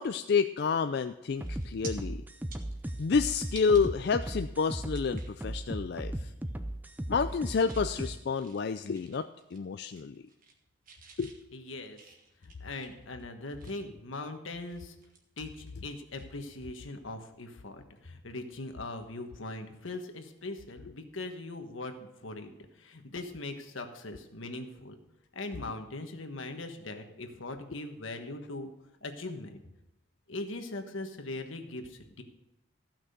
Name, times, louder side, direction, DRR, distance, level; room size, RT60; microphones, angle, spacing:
voice 1, 0.0-2.2 3.0-6.3 7.1-10.1 11.2-11.4, left 5 dB, 55° left, 9 dB, 0.4 m, -29 dB
sound 1, 1.4-8.2, right 1 dB, 10° right, 0.5 m, -37 dB
sound 2, 1.4-1.9 2.3-3.8 4.3-4.4 4.9-5.4 5.8-6.0 6.3-6.8 7.1-7.9 8.3-9.6 9.9-10.6 10.8-14.0 14.4-16.3 16.6-16.8 18.6-18.8, right 5 dB, 45° right, 1.5 m, -52 dB
voice 2, 11.5-12.0 12.4-14.9 15.4-25.0 25.3-28.7 29.0-29.6 30.3-32.2, left 2 dB, 80° left, 6 dB, 1.4 m, -40 dB
15.0 x 6.0 x 6.6 m, 0.93 s
head